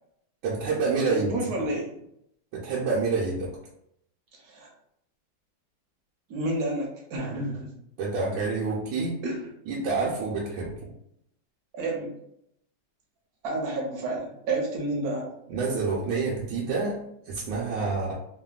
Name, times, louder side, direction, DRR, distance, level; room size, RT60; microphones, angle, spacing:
voice 1, 0.4-1.7 2.5-3.5 8.0-9.2 9.7-10.9 15.5-18.1, right 4 dB, 80° right, -6 dB, 1.4 m, -28 dB
voice 2, 1.1-1.9 4.4-4.7 6.3-7.8 9.2-9.4 11.7-12.1 13.4-15.3, right 2 dB, 65° right, -1 dB, 1.1 m, -30 dB
3.3 x 2.2 x 2.3 m, 0.75 s
omnidirectional pair, 2.1 m